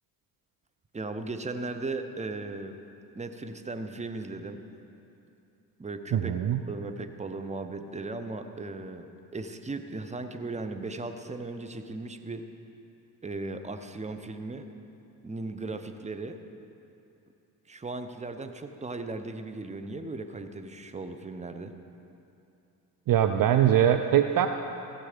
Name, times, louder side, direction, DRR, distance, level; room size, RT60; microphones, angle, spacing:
voice 1, 0.9-2.8 3.1-4.6 5.8-12.5 13.2-14.7 15.2-16.4 17.7-21.8, right 3 dB, 15° right, 8 dB, 0.9 m, -37 dB
voice 2, 6.1-6.6 23.1-24.5, right 10 dB, 45° right, 8 dB, 0.6 m, -22 dB
15.5 x 7.6 x 5.1 m, 2.7 s
hypercardioid pair, 55°, 48 cm